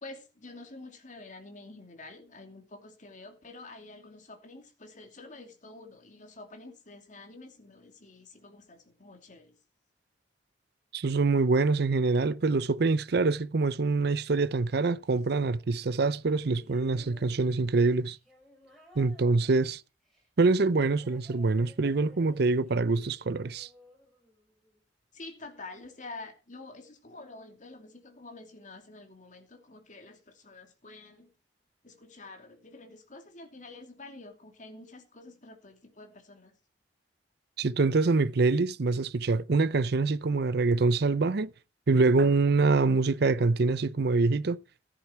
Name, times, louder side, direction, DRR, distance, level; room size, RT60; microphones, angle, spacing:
voice 1, 0.0-9.6 25.1-31.3 31.8-36.5, left 2 dB, 45° left, 2.8 m, -48 dB
voice 2, 10.9-18.2 19.0-19.8 20.4-23.7 37.6-41.5 41.9-44.6, right 3 dB, 65° right, 0.6 m, -25 dB
sound 1, 16.4-24.8 25.8-25.9, left 1 dB, ahead, 6.7 m, -57 dB
14.5 x 10.5 x 4.5 m
head